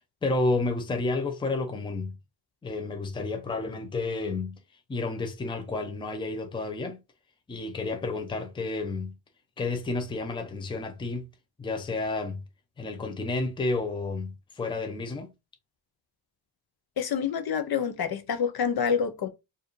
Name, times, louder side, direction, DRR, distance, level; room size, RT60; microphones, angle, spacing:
voice 1, 0.2-2.2 2.6-4.6 4.9-7.0 7.5-9.1 9.6-11.3 11.6-12.4 12.8-15.3, left 3 dB, 10° left, 0.6 m, -31 dB
voice 2, 17.0-19.3, left 7 dB, 50° left, 0.7 m, -27 dB
4.5 x 2.6 x 3.1 m
cardioid pair, 145°, 48 cm